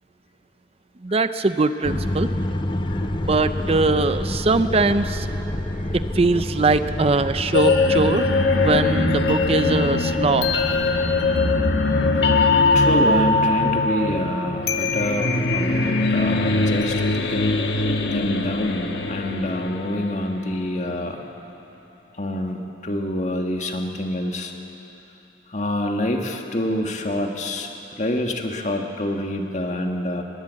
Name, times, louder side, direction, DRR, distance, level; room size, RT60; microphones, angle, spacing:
voice 1, 1.0-2.3 3.3-5.3 5.9-8.3 8.6-10.6, right 3 dB, 35° right, 11 dB, 0.6 m, -21 dB
sound 1, 1.8-11.8, left 1 dB, 30° left, 0.8 m, -29 dB
sound 2, 7.5-20.5, left 3 dB, 70° left, 1.4 m, -21 dB
voice 2, 12.7-21.2 22.2-24.5 25.5-27.7 28.0-30.2, left 1 dB, 45° left, 3 dB, 1.8 m, -27 dB
21.0 x 19.5 x 7.6 m, 3.0 s
head